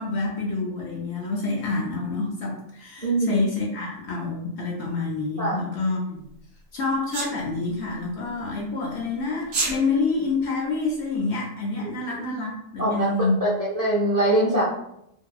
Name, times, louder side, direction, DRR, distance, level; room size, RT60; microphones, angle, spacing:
voice 1, 0.0-6.2 6.7-13.4, left 3 dB, 65° left, -1 dB, 0.8 m, -27 dB
voice 2, 3.0-3.4 5.4-5.6 11.8-11.9 12.8-13.1 13.4-14.6, right 1 dB, 40° right, -8 dB, 0.6 m, -23 dB
Sneeze, 7.1-7.3 9.4-9.8, right 3 dB, 90° right, 0.3 m, -25 dB
2.7 x 2.6 x 2.3 m, 0.77 s
omnidirectional pair, 1.4 m